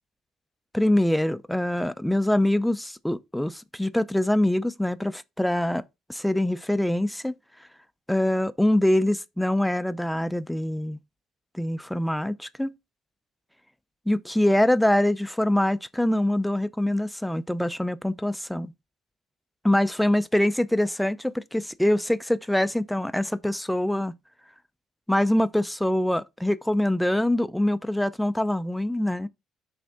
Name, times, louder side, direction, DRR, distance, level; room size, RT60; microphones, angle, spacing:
voice 1, 0.7-5.8 6.1-7.3 8.1-11.0 11.5-12.7 14.1-18.7 19.6-24.2 25.1-29.3, left 1 dB, 5° left, 0.5 m, -24 dB
6.1 x 3.4 x 5.5 m
cardioid pair, 110°, 0 cm